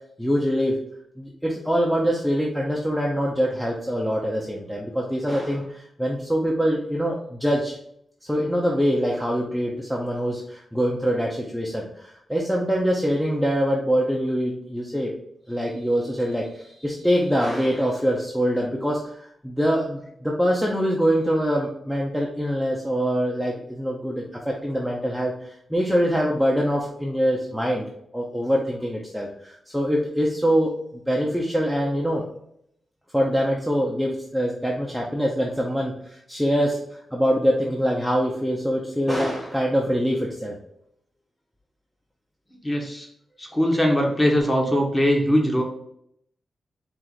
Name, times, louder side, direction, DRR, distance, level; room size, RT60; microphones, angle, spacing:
voice 1, 0.2-0.8 1.2-7.8 8.2-15.1 15.5-27.9 28.1-30.7 31.1-32.2 33.1-36.8 37.1-40.6, equal, ahead, -3 dB, 0.6 m, -24 dB
voice 2, 42.6-43.1 43.4-45.6, equal, 15° left, 0 dB, 1.0 m, -21 dB
4.4 x 2.5 x 3.9 m, 0.72 s
wide cardioid pair, 115°, 0 cm